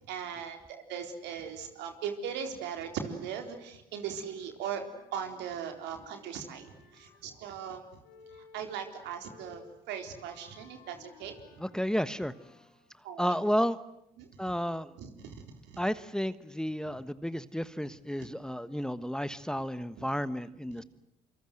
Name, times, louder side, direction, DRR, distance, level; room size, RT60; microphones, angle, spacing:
voice 1, 0.1-4.8 5.1-7.9 8.3-11.4 13.0-13.3 14.2-14.3 15.0-15.8, right 7 dB, 70° right, 6 dB, 4.1 m, -39 dB
Wind instrument woodwind instrument, 4.5-7.5 8.0-12.9, left 5 dB, 80° left, 7.9 m, -58 dB
voice 2, 11.6-12.3 13.2-13.8 14.4-14.9 15.8-20.8, equal, 5° left, 15 dB, 1.3 m, -32 dB
27.5 x 25.0 x 7.9 m, 0.82 s
hypercardioid pair, 55°, 18 cm